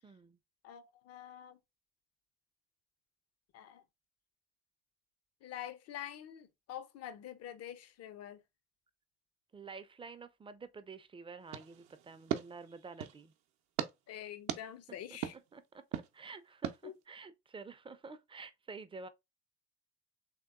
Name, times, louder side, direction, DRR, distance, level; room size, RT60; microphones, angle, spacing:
voice 1, 0.0-0.4 9.5-13.3 15.5-15.8 16.1-19.1, right 4 dB, 15° right, 0.5 m, -49 dB
voice 2, 0.6-1.6 3.5-3.8 5.4-8.4 14.1-15.3 16.8-16.9, left 10 dB, 50° left, 0.6 m, -46 dB
sound 1, 11.5-13.2 13.8-13.9 14.5-14.6 15.2-15.4 15.9-16.1 16.6-16.8, right 11 dB, 60° right, 0.6 m, -38 dB
3.3 x 2.9 x 2.4 m
figure-of-eight pair, 50°, 33 cm